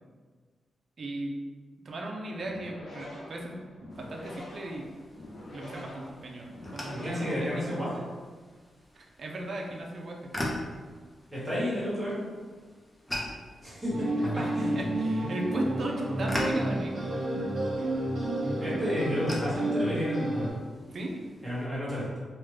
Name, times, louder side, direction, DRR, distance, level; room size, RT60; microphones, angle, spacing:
voice 1, 1.0-1.3 1.8-3.7 4.0-4.9 5.4-7.9 8.9-10.3 14.3-17.2 20.9-21.2, right 1 dB, 50° right, 0 dB, 0.5 m, -36 dB
sound 1, 2.4-8.1, left 1 dB, 80° left, 0.7 m, -46 dB
sound 2, 3.9-21.7, left 1 dB, 10° left, 0.5 m, -42 dB
voice 2, 6.9-7.9 11.3-12.2 13.6-14.0 14.5-14.8 18.6-20.5 21.4-22.0, equal, 5° right, -9 dB, 1.4 m, -31 dB
sound 3, 13.9-20.5, right 1 dB, 75° right, 1.0 m, -30 dB
3.3 x 2.2 x 3.2 m, 1.5 s
wide cardioid pair, 125°, 0 cm